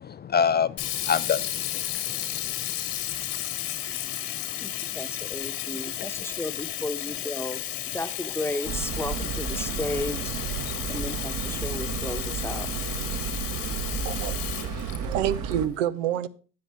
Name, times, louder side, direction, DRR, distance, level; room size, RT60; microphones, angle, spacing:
voice 1, 0.0-2.7 3.2-3.3 3.9-4.3 10.7-10.8, left 7 dB, 30° left, 0.4 m, -28 dB
Sink (filling or washing), 0.8-15.5, left 12 dB, 75° left, 2.0 m, -33 dB
voice 2, 4.6-10.2 10.9-12.7, left 2 dB, 5° left, 1.0 m, -34 dB
sound 1, 8.6-15.7, right 6 dB, 55° right, 1.4 m, -32 dB
voice 3, 14.0-16.3, right 10 dB, 90° right, 0.7 m, -29 dB
13.0 x 8.7 x 3.6 m
hypercardioid pair, 75°, 37 cm